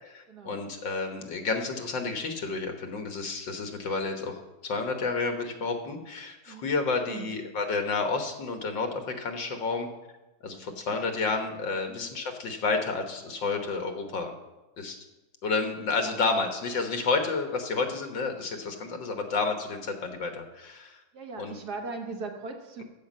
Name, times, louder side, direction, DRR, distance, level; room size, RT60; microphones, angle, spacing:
voice 1, 0.0-9.9 10.4-14.3 14.8-15.0 15.4-21.0 21.4-21.6, left 4 dB, 70° left, 5 dB, 1.9 m, -30 dB
voice 2, 21.1-22.8, right 3 dB, 55° right, 3 dB, 1.7 m, -39 dB
13.5 x 5.4 x 7.4 m, 1.1 s
omnidirectional pair, 2.2 m